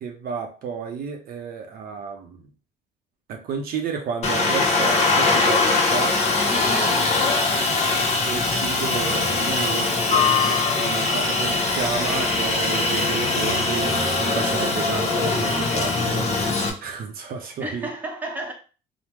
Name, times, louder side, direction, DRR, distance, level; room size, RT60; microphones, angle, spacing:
voice 1, 0.0-2.4 3.3-6.2 6.7-6.9 8.2-17.9, right 6 dB, 60° right, 0.5 m, -32 dB
Aircraft, 4.2-16.7, left 3 dB, 40° left, 0.7 m, -22 dB
voice 2, 6.5-7.1 17.6-18.5, right 1 dB, 10° right, 0.8 m, -31 dB
3.3 x 2.0 x 3.0 m
cardioid pair, 110°, 17 cm